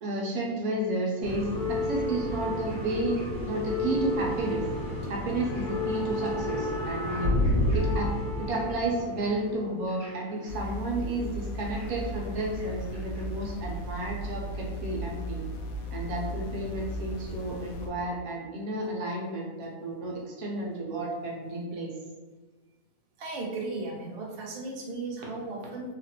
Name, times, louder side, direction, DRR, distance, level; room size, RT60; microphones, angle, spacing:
voice 1, 0.0-4.6 5.1-7.3 7.7-8.1 8.4-15.4 15.9-21.9, right 1 dB, 75° right, -2 dB, 1.2 m, -32 dB
sound 1, 1.2-10.7 11.6-12.7 12.9-13.2 14.1-14.2, left 1 dB, 25° right, 1.3 m, -30 dB
sound 2, 10.5-17.9, equal, 70° left, 1.0 m, -36 dB
voice 2, 23.2-25.9, right 3 dB, 60° right, -2 dB, 0.6 m, -36 dB
2.9 x 2.4 x 2.8 m, 1.3 s
omnidirectional pair, 1.7 m